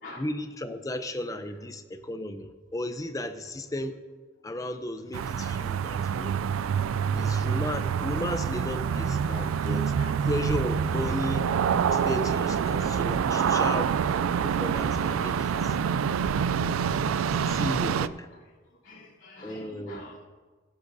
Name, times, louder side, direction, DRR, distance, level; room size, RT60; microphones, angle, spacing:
voice 1, 0.2-4.0 4.4-6.4 7.1-9.9 10.2-11.5 11.9-13.9 14.4-15.8 17.5-18.3 19.4-20.0, left 1 dB, 15° left, 9 dB, 0.6 m, -34 dB
sound 1, 5.1-18.1, right 7 dB, 85° right, 0.3 m, -26 dB
voice 2, 18.7-20.3, left 2 dB, 65° left, -6 dB, 3.3 m, -48 dB
16.5 x 11.5 x 2.7 m, 1.4 s
head